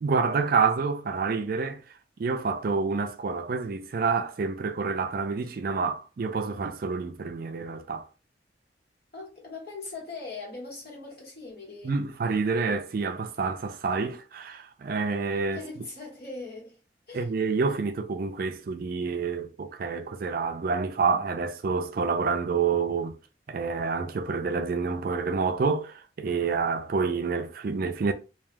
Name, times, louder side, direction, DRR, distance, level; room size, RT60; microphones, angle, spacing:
voice 1, 0.0-1.8 2.2-8.1 11.8-15.6 17.1-23.2 23.5-28.1, right 4 dB, 55° right, 0.4 m, -28 dB
voice 2, 9.1-11.9 15.5-16.8 17.1-17.3, left 3 dB, 60° left, 1.3 m, -40 dB
2.3 x 2.3 x 3.2 m
head